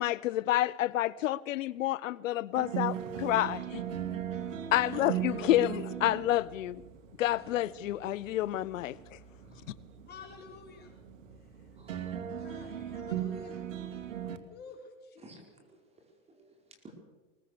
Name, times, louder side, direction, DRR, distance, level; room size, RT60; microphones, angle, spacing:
voice 1, 0.0-3.8 4.7-6.8 7.2-9.0, left 14 dB, 80° left, 0.7 m, -29 dB
sound 1, 2.5-14.4, right 10 dB, 80° right, 2.2 m, -39 dB
voice 2, 4.4-5.0 5.4-5.7 7.4-7.5 10.1-11.0 11.4-12.0 12.4-13.6 14.5-15.3, left 6 dB, 25° left, 5.7 m, -50 dB
voice 3, 11.8-12.1 15.2-16.9, right 2 dB, 15° right, 5.0 m, -56 dB
21.5 x 19.5 x 6.7 m
hypercardioid pair, 135°, 38 cm